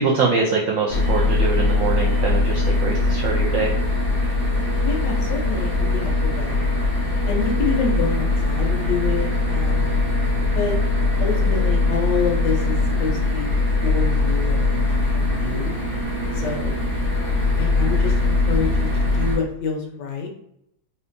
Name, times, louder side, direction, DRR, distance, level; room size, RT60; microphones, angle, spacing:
voice 1, 0.0-3.7, right 4 dB, 70° right, -1 dB, 0.7 m, -23 dB
sound 1, 0.9-19.4, left 2 dB, 45° left, 0.9 m, -21 dB
voice 2, 4.8-6.7 7.3-10.0 10.6-10.7 11.2-13.5 13.8-15.7 16.3-16.7 17.6-20.3, left 5 dB, 85° left, 2 dB, 1.4 m, -27 dB
4.1 x 2.2 x 2.5 m, 0.77 s
omnidirectional pair, 1.8 m